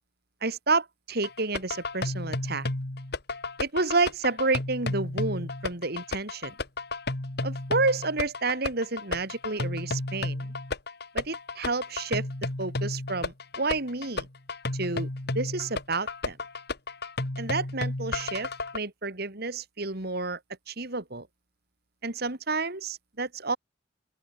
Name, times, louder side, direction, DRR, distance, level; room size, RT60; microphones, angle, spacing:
voice 1, 0.4-2.7 3.6-6.5 7.4-10.5 11.1-12.3 12.6-14.3 14.7-15.1 15.3-16.4 17.4-20.4 20.7-21.3 22.0-23.6, right 3 dB, 60° right, 3.3 m, -30 dB
sound 1, 1.2-18.8, left 2 dB, 60° left, 2.0 m, -32 dB
open air
head